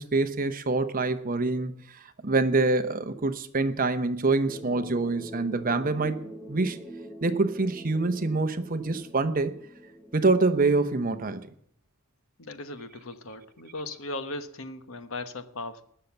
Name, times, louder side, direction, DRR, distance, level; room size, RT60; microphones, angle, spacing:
voice 1, 0.0-6.2 6.5-6.8 7.2-9.6 10.1-11.5, right 3 dB, 40° right, 0.9 m, -26 dB
sound 1, 4.5-10.7, right 1 dB, 5° left, 0.9 m, -44 dB
voice 2, 12.4-15.8, left 2 dB, 70° left, 1.2 m, -38 dB
19.5 x 6.8 x 7.1 m
head